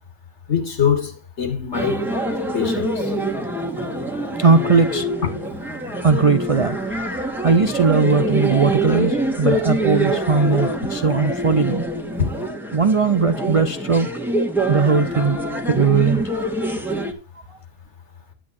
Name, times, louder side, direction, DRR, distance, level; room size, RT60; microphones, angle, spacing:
voice 1, 0.5-2.0 2.5-3.0, left 7 dB, 65° left, 2.3 m, -23 dB
sound 1, 1.7-17.1, right 1 dB, ahead, 1.5 m, -25 dB
voice 2, 4.4-5.1 6.0-11.8 12.7-14.1 14.7-15.4 15.7-16.3, right 4 dB, 40° right, 0.5 m, -19 dB
10.5 x 8.6 x 4.3 m
omnidirectional pair, 1.3 m